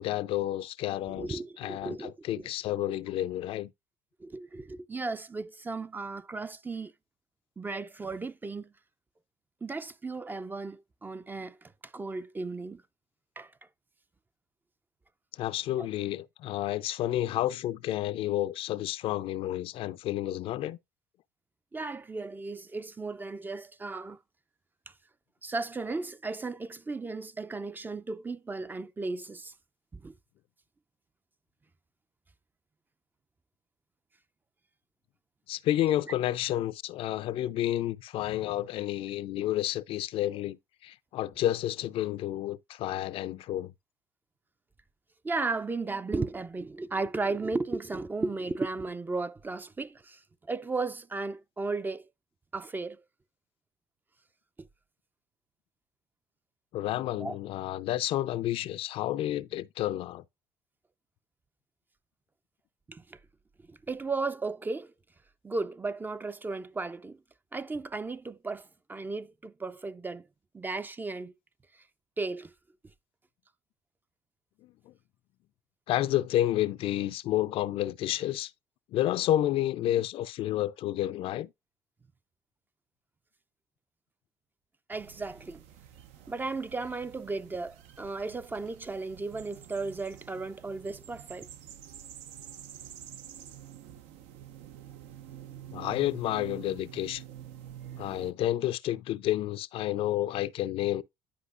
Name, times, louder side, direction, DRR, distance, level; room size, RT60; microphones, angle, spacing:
voice 1, 0.0-3.7 15.3-20.8 35.5-43.7 56.7-60.2 74.6-74.9 75.9-78.5 78.9-81.5 95.7-97.2 98.0-101.0, left 13 dB, 60° left, 0.4 m, -30 dB
voice 2, 1.1-2.4 4.2-6.9 7.6-8.7 9.6-12.8 13.4-13.5 15.8-15.9 21.7-24.2 25.4-29.5 29.9-30.1 45.2-50.2 50.5-52.1 52.5-53.0 57.2-57.4 62.9-63.2 63.7-64.9 65.4-67.2 67.5-70.3 70.5-71.3 72.2-72.5 84.9-85.6 86.3-91.5, right 3 dB, 15° right, 0.4 m, -35 dB
sound 1, 84.9-98.3, right 11 dB, 75° right, 0.6 m, -48 dB
10.0 x 4.8 x 2.4 m
supercardioid pair, 75°, 11 cm